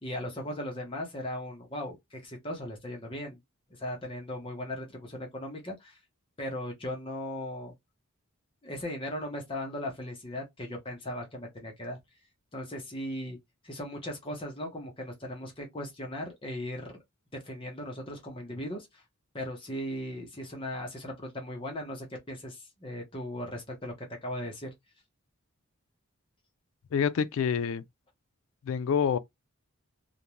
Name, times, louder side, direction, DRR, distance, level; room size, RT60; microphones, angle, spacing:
voice 1, 0.0-3.4 3.8-6.0 6.4-7.7 8.6-12.0 12.5-13.4 13.6-17.0 17.3-19.0 19.3-24.7, left 1 dB, 25° left, 0.7 m, -38 dB
voice 2, 26.9-27.8 28.6-29.2, left 7 dB, 65° left, 0.3 m, -27 dB
2.5 x 2.1 x 2.9 m
head